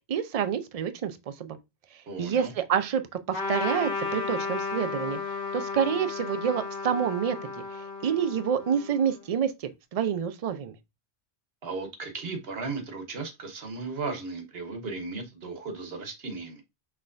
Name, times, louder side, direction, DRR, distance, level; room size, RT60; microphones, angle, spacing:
voice 1, 0.1-1.6 2.2-5.2 5.5-7.5 8.0-10.7, right 8 dB, 50° right, 0.4 m, -28 dB
voice 2, 2.1-2.5 11.6-16.6, right 3 dB, 70° right, 1.1 m, -36 dB
Trumpet, 3.3-9.2, left 4 dB, 55° left, 1.5 m, -34 dB
5.7 x 3.2 x 2.5 m
omnidirectional pair, 1.1 m